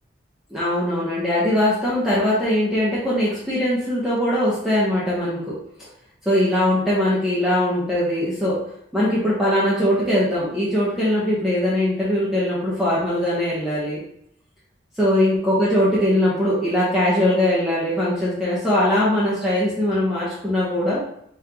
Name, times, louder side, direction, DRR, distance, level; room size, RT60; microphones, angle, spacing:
voice 1, 0.5-5.5 6.2-8.6 8.9-14.0 15.0-21.0, left 1 dB, ahead, -9 dB, 0.9 m, -21 dB
3.7 x 3.2 x 2.9 m, 0.71 s
head